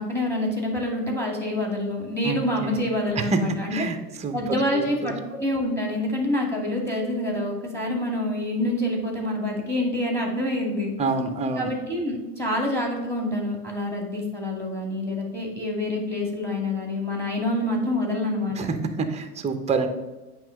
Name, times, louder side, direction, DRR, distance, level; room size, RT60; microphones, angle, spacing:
voice 1, 0.0-3.8 4.3-10.9 11.6-18.6, left 1 dB, 5° left, 0 dB, 2.2 m, -27 dB
voice 2, 3.2-4.3 4.7-5.1 11.0-11.7 18.6-19.9, right 4 dB, 15° right, 7 dB, 0.8 m, -27 dB
8.8 x 3.0 x 6.4 m, 1.1 s
hypercardioid pair, 95°, 48 cm